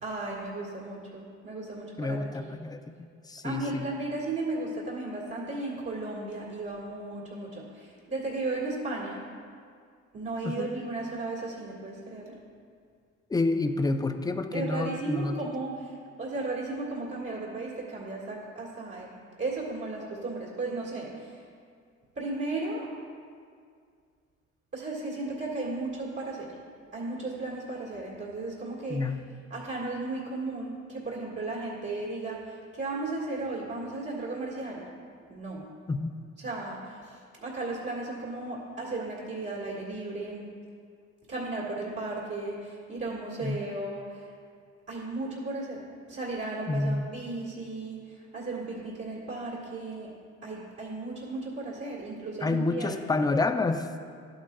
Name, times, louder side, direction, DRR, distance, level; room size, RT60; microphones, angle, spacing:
voice 1, 0.0-2.5 3.4-9.2 10.1-12.4 14.5-15.9 16.2-19.1 19.4-21.3 22.2-22.9 24.7-26.5 26.9-29.0 29.5-34.8 35.3-35.6 36.4-37.1 37.4-40.4 41.3-44.2 44.9-45.8 46.1-48.0 48.3-50.1 50.4-53.0, right 2 dB, 50° right, -6 dB, 1.8 m, -35 dB
voice 2, 2.0-2.8 3.3-3.9 10.4-10.7 13.3-15.4 28.9-29.2 35.9-36.1 43.4-43.6 46.7-47.0 52.4-53.9, left 3 dB, 15° left, 8 dB, 0.4 m, -28 dB
11.5 x 8.7 x 2.3 m, 2.2 s
cardioid pair, 90°, 30 cm